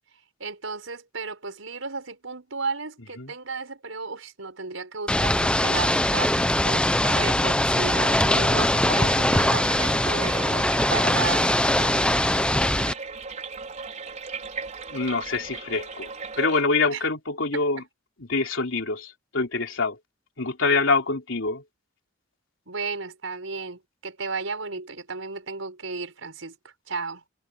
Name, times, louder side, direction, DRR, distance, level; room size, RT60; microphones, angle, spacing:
voice 1, 0.4-11.5 16.9-17.0 17.5-17.6 22.7-27.2, right 4 dB, 90° right, 5.1 m, -34 dB
Ocean / Boat Water vehicle, 5.1-12.9, left 1 dB, 5° left, 0.8 m, -22 dB
sound 1, 8.8-16.6, right 4 dB, 40° right, 5.1 m, -37 dB
voice 2, 14.9-16.1 16.4-17.8 18.3-20.0 20.4-21.6, left 3 dB, 75° left, 3.4 m, -25 dB
head